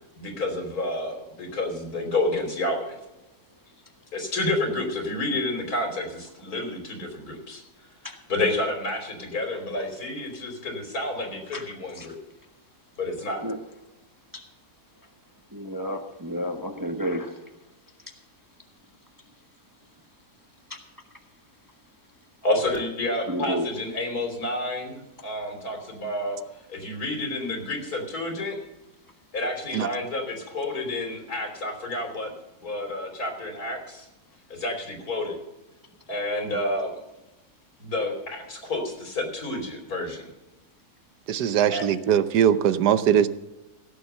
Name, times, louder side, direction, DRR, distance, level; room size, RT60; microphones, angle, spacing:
voice 1, 0.2-3.0 4.1-7.6 8.3-12.2 13.0-13.4 22.4-26.4 26.7-28.6 29.3-32.3 32.6-34.1 34.5-35.4 36.1-36.9 37.8-40.3 41.7-41.9, left 2 dB, 65° left, 3 dB, 3.6 m, -29 dB
voice 2, 15.5-17.3 23.3-23.7, equal, 15° right, 5 dB, 1.0 m, -30 dB
voice 3, 41.3-43.3, right 9 dB, 85° right, 13 dB, 1.4 m, -21 dB
16.5 x 7.2 x 6.8 m, 0.97 s
omnidirectional pair, 1.7 m